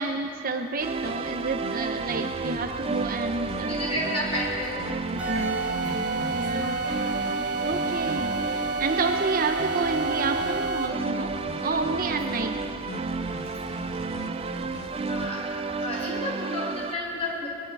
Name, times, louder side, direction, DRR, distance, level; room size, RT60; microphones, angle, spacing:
voice 1, 0.0-3.8 5.2-5.6 6.3-6.8 7.6-8.3 8.8-11.3 11.6-12.6, right 3 dB, 45° right, 5 dB, 0.7 m, -29 dB
sound 1, 0.8-15.3, left 2 dB, 70° left, 1.0 m, -41 dB
sound 2, 0.8-16.9, right 4 dB, 30° right, 0.3 m, -32 dB
voice 2, 3.7-4.8 5.3-5.9 6.6-7.1 13.6-14.5 15.1-15.4 15.8-17.5, left 1 dB, 30° left, -4 dB, 4.4 m, -33 dB
sound 3, 5.2-11.1, right 3 dB, 5° right, 1.9 m, -30 dB
20.5 x 12.5 x 4.8 m, 2.7 s
head